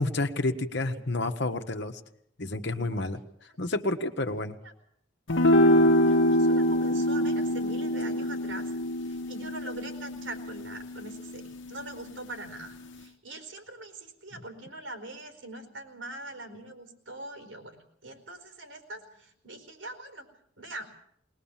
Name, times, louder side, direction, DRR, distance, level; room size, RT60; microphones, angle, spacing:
voice 1, 0.0-2.0 2.4-3.2 3.6-4.6 14.3-14.4, left 2 dB, 65° left, 7 dB, 1.4 m, -30 dB
sound 1, 5.3-11.8, left 1 dB, 80° left, 1.2 m, -25 dB
voice 2, 5.5-8.7 9.0-20.3 20.6-20.8, right 2 dB, 80° right, 5 dB, 4.4 m, -43 dB
20.5 x 20.0 x 7.4 m, 0.70 s
head